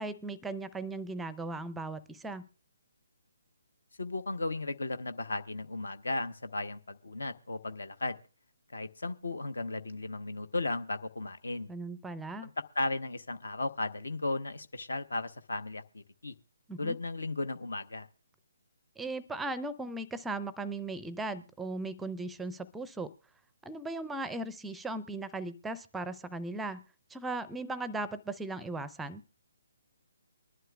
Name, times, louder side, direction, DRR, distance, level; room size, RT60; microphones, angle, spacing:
voice 1, 0.0-2.4 11.7-12.5 16.7-17.0 19.0-23.1 23.6-26.8 27.1-29.2, right 2 dB, 5° right, 16 dB, 0.5 m, -37 dB
voice 2, 4.0-8.2 8.7-11.7 12.4-16.3 16.8-18.1, left 2 dB, 65° left, 12 dB, 0.9 m, -35 dB
23.0 x 11.0 x 2.3 m, 0.38 s
figure-of-eight pair, 140°, 0 cm